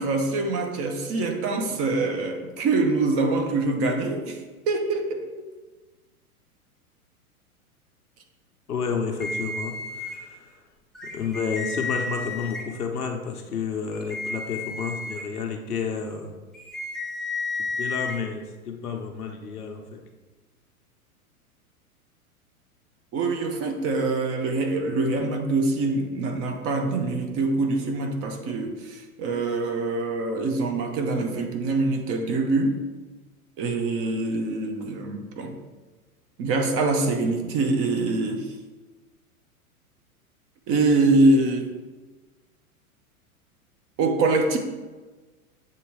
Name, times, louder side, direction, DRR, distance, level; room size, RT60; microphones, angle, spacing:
voice 1, 0.0-5.5 23.1-32.8 33.6-35.6 36.4-38.5 40.7-41.7 44.0-44.6, right 2 dB, 30° right, 4 dB, 0.9 m, -24 dB
voice 2, 8.7-10.6 11.1-16.3 17.6-20.0, left 5 dB, 85° left, 2 dB, 1.0 m, -31 dB
sound 1, 9.2-10.2 10.9-12.6 13.9-15.2 16.5-18.2, left 3 dB, ahead, 0.4 m, -32 dB
7.9 x 3.0 x 4.7 m, 1.3 s
hypercardioid pair, 105°, 44 cm